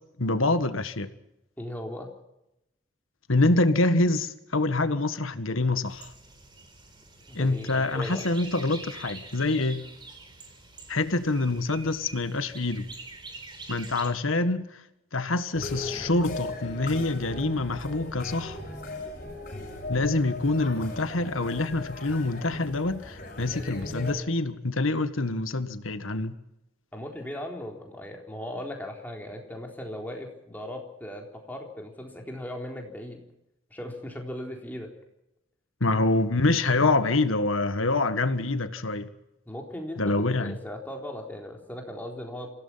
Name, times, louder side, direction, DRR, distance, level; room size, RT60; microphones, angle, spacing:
voice 1, 0.2-1.1 3.3-6.1 7.3-9.8 10.9-12.9 13.7-14.7 15.1-18.6 19.9-26.4 35.8-39.1 40.0-40.6, left 2 dB, 85° left, 1.6 m, -26 dB
voice 2, 1.6-2.1 7.3-8.2 26.9-33.2 33.7-34.9 39.5-42.5, left 1 dB, 10° left, 3.9 m, -38 dB
sound 1, 5.8-14.1, right 3 dB, 25° right, 4.2 m, -45 dB
sound 2, 15.5-24.1, left 2 dB, 40° left, 7.0 m, -38 dB
27.5 x 17.0 x 5.8 m
head